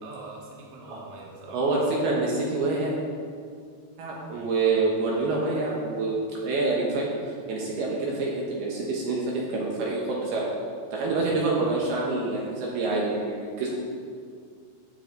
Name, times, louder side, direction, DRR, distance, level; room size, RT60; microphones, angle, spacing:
voice 1, 0.0-1.7 4.3-4.5 11.2-11.4, right 2 dB, 50° right, -3 dB, 2.0 m, -44 dB
voice 2, 1.5-2.9 4.0-6.2 6.4-7.1 7.5-10.5 10.9-13.7, right 3 dB, 70° right, -3 dB, 2.9 m, -26 dB
14.5 x 8.2 x 4.0 m, 2.2 s
omnidirectional pair, 5.3 m